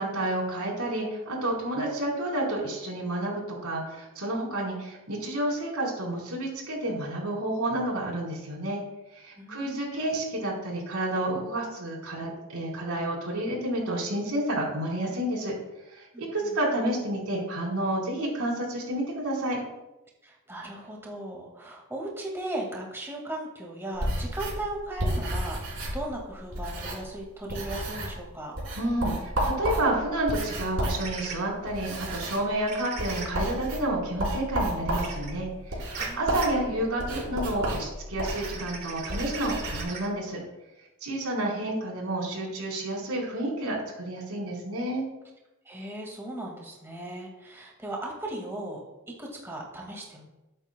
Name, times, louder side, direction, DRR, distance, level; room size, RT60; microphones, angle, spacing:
voice 1, 0.0-8.8 9.1-15.6 15.9-19.6 28.7-40.4 41.0-45.1, right 1 dB, 85° right, -3 dB, 4.3 m, -30 dB
voice 2, 9.4-9.8 16.1-16.5 20.2-28.5 36.0-36.4 45.7-48.8 49.2-50.2, right 1 dB, 10° right, -2 dB, 2.0 m, -37 dB
sound 1, 23.9-27.2 27.5-28.2 28.6-39.8, right 1 dB, 65° right, 4.4 m, -32 dB
sound 2, 31.0-31.4 32.7-33.3 35.0-35.3 35.9-36.1 36.4-36.5 38.2-40.1, right 5 dB, 45° right, 2.7 m, -38 dB
20.0 x 8.9 x 2.3 m, 0.98 s
head